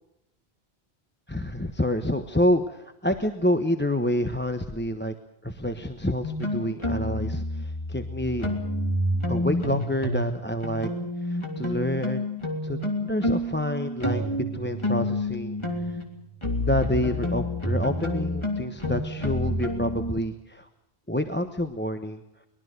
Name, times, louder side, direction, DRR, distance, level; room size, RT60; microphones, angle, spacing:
voice 1, 1.3-5.1 5.4-8.5 9.3-10.9 11.2-12.2 12.6-14.2 14.5-15.6 15.9-16.0 16.6-20.7 21.1-22.2, left 1 dB, 10° left, 7 dB, 1.0 m, -28 dB
sound 1, 6.2-10.3 10.6-20.1, left 1 dB, 25° left, 3.2 m, -29 dB
24.0 x 21.0 x 6.7 m, 0.86 s
omnidirectional pair, 1.1 m